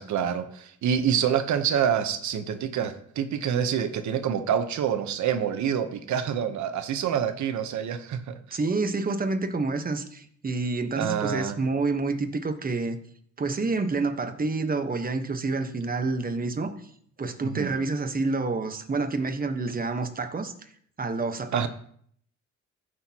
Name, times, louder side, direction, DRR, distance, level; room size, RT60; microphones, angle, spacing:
voice 1, 0.0-8.6 10.9-11.6 17.4-17.7 21.5-21.7, right 8 dB, 70° right, 9 dB, 0.9 m, -27 dB
voice 2, 8.5-13.0 13.4-16.7 17.2-20.5 21.0-21.7, right 3 dB, 30° right, 7 dB, 1.2 m, -28 dB
15.0 x 6.3 x 2.9 m, 0.62 s
cardioid pair, 90°, 30 cm